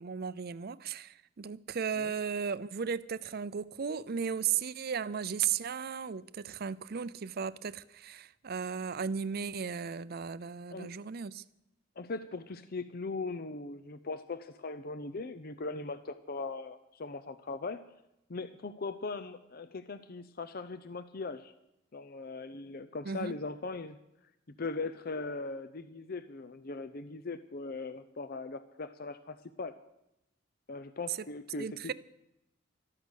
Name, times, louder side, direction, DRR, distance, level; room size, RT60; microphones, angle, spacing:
voice 1, 0.0-11.4 23.0-23.4 31.1-31.2 31.6-31.9, right 7 dB, 50° right, 0.5 m, -35 dB
voice 2, 12.0-17.8 18.3-21.5 21.9-24.0 24.6-29.8 30.7-31.9, left 3 dB, 50° left, 0.6 m, -39 dB
13.5 x 12.5 x 6.4 m
head